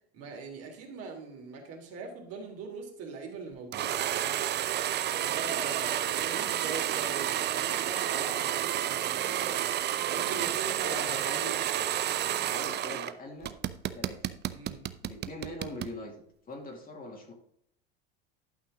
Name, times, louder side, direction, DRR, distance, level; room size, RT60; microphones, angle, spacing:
voice 1, 0.1-4.4 5.0-9.6 10.0-11.3 14.5-14.8, right 4 dB, 50° right, 1 dB, 3.0 m, -41 dB
sound 1, 3.7-13.1 13.4-15.9, right 11 dB, 35° right, 0.6 m, -30 dB
voice 2, 6.1-6.5 10.8-11.6 12.3-13.5 13.9-14.3 15.0-16.1 16.5-17.3, left 1 dB, 25° left, 1 dB, 2.4 m, -42 dB
11.5 x 5.8 x 3.7 m, 0.68 s
hypercardioid pair, 95°, 32 cm